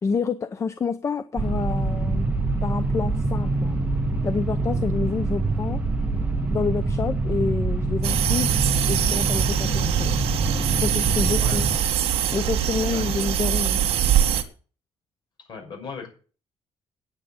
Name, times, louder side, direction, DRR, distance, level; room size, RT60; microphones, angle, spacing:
voice 1, 0.0-2.3 2.6-3.8 4.2-5.8 6.5-8.5 8.9-10.1 10.7-11.7 12.3-13.8, left 5 dB, 30° left, 12 dB, 0.7 m, -28 dB
sound 1, 1.4-11.8, right 3 dB, 15° right, 1.4 m, -25 dB
sound 2, 8.0-14.4, right 10 dB, 70° right, 1.7 m, -23 dB
voice 2, 11.4-11.8 12.9-13.0 15.5-16.1, left 5 dB, 50° left, 3 dB, 6.1 m, -37 dB
9.0 x 8.7 x 8.6 m, 0.38 s
cardioid pair, 150°, 10 cm